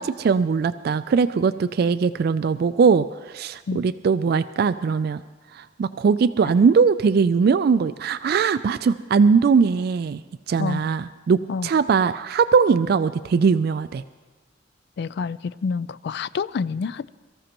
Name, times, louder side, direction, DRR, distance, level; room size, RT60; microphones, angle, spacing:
voice 1, 0.0-5.2 5.5-10.2 10.5-14.0, right 5 dB, 55° right, 0.3 m, -20 dB
voice 2, 15.0-17.1, left 5 dB, 60° left, 0.3 m, -28 dB
23.0 x 14.0 x 2.9 m
head